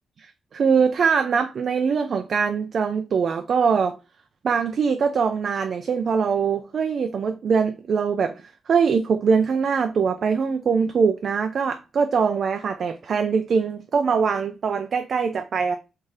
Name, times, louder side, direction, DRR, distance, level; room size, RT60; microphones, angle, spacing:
voice 1, 0.2-4.0 4.4-8.3 8.7-15.8, right 6 dB, 50° right, 0.3 m, -22 dB
3.7 x 2.7 x 3.1 m
wide cardioid pair, 155°, 0 cm